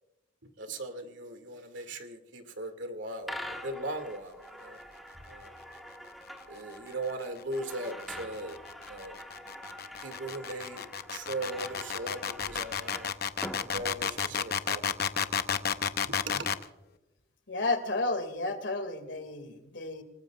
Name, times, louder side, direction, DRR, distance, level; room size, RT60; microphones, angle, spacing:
voice 1, 0.6-3.4 3.6-4.8 5.3-5.5 6.5-8.6 8.9-9.2 10.0-13.1 13.6-15.0 16.0-16.5, right 2 dB, 80° right, 6 dB, 2.3 m, -39 dB
sound 1, 3.2-14.5, equal, ahead, 1.5 m, -45 dB
sound 2, 7.4-16.6, left 7 dB, 55° left, 0.7 m, -32 dB
voice 2, 17.5-20.0, left 2 dB, 75° left, 8 dB, 2.4 m, -32 dB
28.0 x 19.0 x 2.5 m, 0.98 s
head